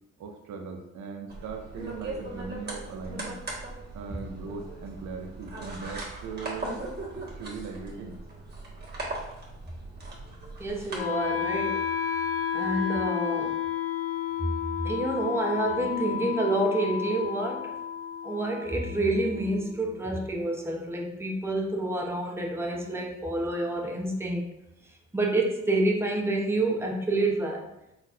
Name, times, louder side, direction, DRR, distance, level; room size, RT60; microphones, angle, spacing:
voice 1, 0.2-3.4 3.9-6.7 7.1-8.2, right 5 dB, 70° right, 3 dB, 0.7 m, -39 dB
sound 1, 1.3-11.0, right 2 dB, 35° right, 1.6 m, -39 dB
voice 2, 10.6-11.9 12.5-13.6 14.8-17.8 18.2-24.5 25.1-27.7, right 2 dB, 10° right, 1 dB, 0.7 m, -28 dB
Wind instrument woodwind instrument, 10.9-20.9, left 9 dB, 50° left, 0.6 m, -32 dB
4.1 x 4.1 x 2.5 m, 0.86 s
cardioid pair, 90°, 30 cm